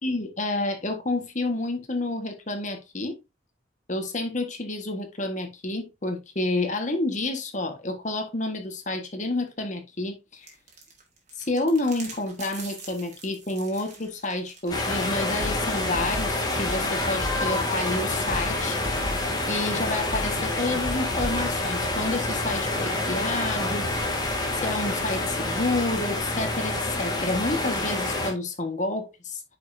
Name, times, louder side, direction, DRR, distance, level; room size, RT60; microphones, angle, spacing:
voice 1, 0.0-3.2 3.9-10.5 11.4-18.9 19.5-23.9 24.5-29.4, left 2 dB, 40° left, 1.5 m, -29 dB
sound 1, 10.4-15.4, right 4 dB, 35° right, 2.5 m, -45 dB
sound 2, 14.7-28.3, left 2 dB, 20° left, 1.7 m, -28 dB
sound 3, 14.7-14.8 15.0-20.5 20.8-21.6, equal, 20° right, 3.1 m, -37 dB
9.1 x 5.5 x 2.7 m
head